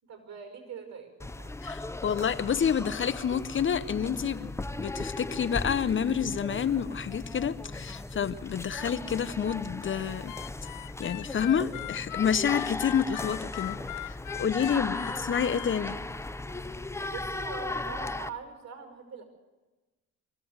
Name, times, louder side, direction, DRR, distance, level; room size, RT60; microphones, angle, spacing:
voice 1, 0.0-1.5 14.9-15.1 17.1-19.2, right 6 dB, 60° right, 5.3 m, -43 dB
sound 1, 1.2-18.3, left 2 dB, 10° left, 0.6 m, -37 dB
voice 2, 1.6-10.3 11.0-16.0, left 7 dB, 40° left, 0.8 m, -29 dB
Harmonica, 10.3-15.8, left 15 dB, 85° left, 0.6 m, -39 dB
23.5 x 16.0 x 8.0 m
cardioid pair, 90°, 30 cm